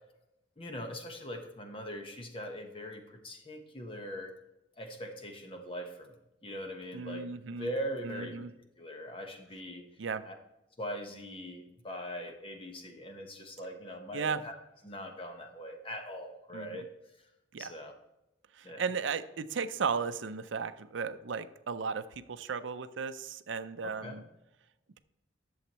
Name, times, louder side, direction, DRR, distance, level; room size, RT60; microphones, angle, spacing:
voice 1, 0.6-4.3 4.8-6.2 6.4-8.4 8.8-9.9 10.2-10.3 10.8-14.5 14.8-16.8 17.6-17.9 18.6-18.8 23.8-24.2, equal, 30° left, 4 dB, 1.1 m, -41 dB
voice 2, 6.9-7.7 8.0-8.5 10.0-10.2 14.1-14.4 16.5-16.8 17.5-17.7 18.5-24.2, right 5 dB, 80° right, 12 dB, 0.5 m, -35 dB
11.5 x 7.1 x 3.0 m, 0.91 s
head